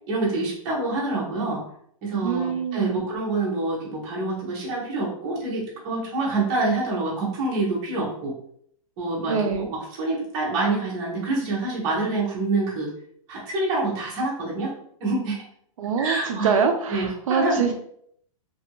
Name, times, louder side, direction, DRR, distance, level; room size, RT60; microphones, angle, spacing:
voice 1, 0.1-1.6 2.0-8.3 9.0-12.9 13.3-14.7 15.0-15.4 16.0-16.6 16.9-17.7, right 2 dB, 20° right, -5 dB, 0.7 m, -26 dB
voice 2, 2.2-3.0 9.3-9.7 15.8-17.7, right 6 dB, 65° right, 4 dB, 0.4 m, -24 dB
2.6 x 2.4 x 2.9 m, 0.68 s
supercardioid pair, 180°, 18 cm